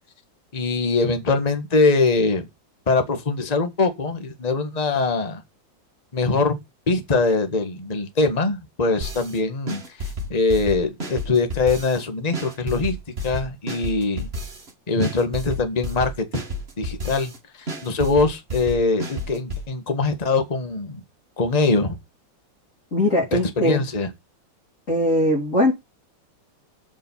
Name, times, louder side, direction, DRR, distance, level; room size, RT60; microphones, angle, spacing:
voice 1, 0.5-2.5 2.9-5.4 6.1-6.6 6.9-13.0 13.2-14.3 14.9-16.4 16.8-17.3 17.6-21.0 21.4-21.9 23.6-24.1, left 3 dB, 20° left, 1.4 m, -22 dB
sound 1, 9.0-9.4 9.7-12.0 12.3-14.7 15.0-17.4 17.7-19.7, left 1 dB, 30° right, 2.1 m, -31 dB
voice 2, 22.9-23.8 24.9-25.7, left 1 dB, 40° left, 2.9 m, -20 dB
7.6 x 5.5 x 7.1 m
omnidirectional pair, 2.2 m